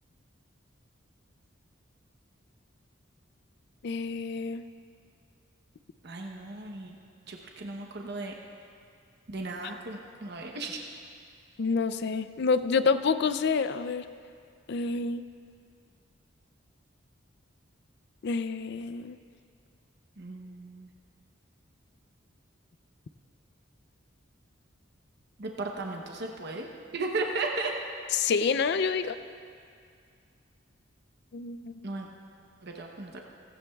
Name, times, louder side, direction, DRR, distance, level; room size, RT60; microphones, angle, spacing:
voice 1, 3.8-4.6 11.6-14.0 14.7-15.2 18.2-19.2 28.1-29.2 31.3-31.8, left 5 dB, 60° left, 12 dB, 0.4 m, -28 dB
voice 2, 6.0-7.0 7.3-8.3 9.3-10.8 20.2-20.9 25.4-26.7 26.9-27.7 31.8-32.1 32.6-33.3, right 3 dB, 55° right, 1 dB, 0.9 m, -35 dB
16.5 x 16.0 x 2.4 m, 2.3 s
head